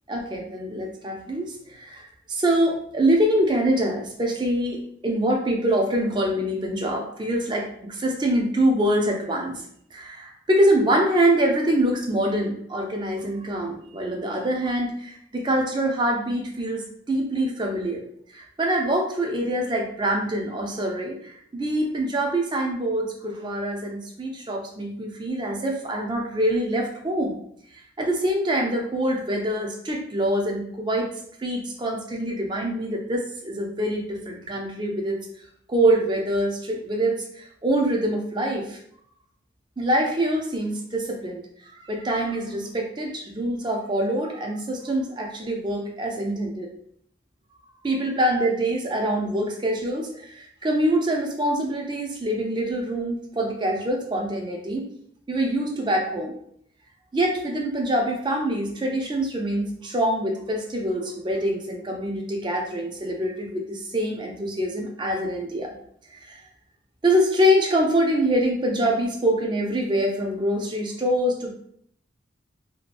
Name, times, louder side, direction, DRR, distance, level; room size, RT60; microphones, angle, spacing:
voice 1, 0.1-9.6 9.9-18.0 18.3-27.4 28.0-31.1 31.4-35.2 35.7-38.8 39.8-41.4 41.9-46.7 47.8-54.9 55.3-56.4 57.1-65.8 66.3-66.4 67.0-71.5, right 1 dB, 25° right, 1 dB, 0.4 m, -25 dB
2.7 x 2.3 x 2.4 m, 0.67 s
head